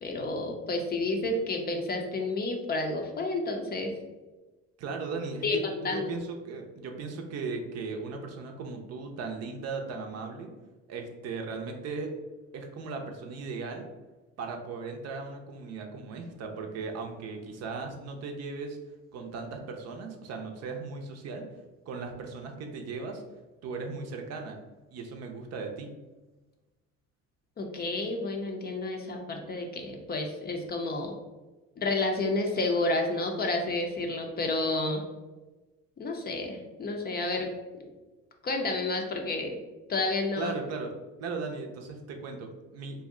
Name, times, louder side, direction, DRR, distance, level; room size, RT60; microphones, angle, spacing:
voice 1, 0.0-3.9 5.4-5.6 5.8-6.1 27.6-31.1 31.8-35.0 36.0-37.5 38.4-39.6 39.9-40.5, left 2 dB, 30° left, 3 dB, 0.5 m, -30 dB
voice 2, 4.8-5.6 5.9-10.5 10.9-12.1 12.5-13.9 14.4-18.8 19.1-21.5 21.9-23.2 23.6-24.6 24.9-25.9 40.4-40.9 41.2-43.0, right 4 dB, 55° right, 3 dB, 0.6 m, -37 dB
2.6 x 2.1 x 3.6 m, 1.2 s
supercardioid pair, 85°, 31 cm